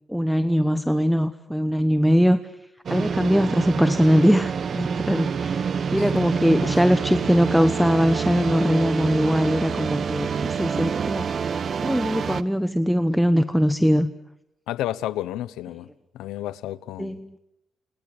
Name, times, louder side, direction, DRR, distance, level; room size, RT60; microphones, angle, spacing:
voice 1, 0.1-2.5 2.9-5.6 5.9-11.3 11.8-14.1 17.0-17.4, equal, ahead, 1.0 m, -21 dB
sound 1, 2.9-12.4, right 6 dB, 50° right, 1.1 m, -27 dB
voice 2, 14.7-15.9 16.1-17.4, left 13 dB, 90° left, 1.0 m, -31 dB
29.0 x 28.5 x 6.8 m
cardioid pair, 90°, 0 cm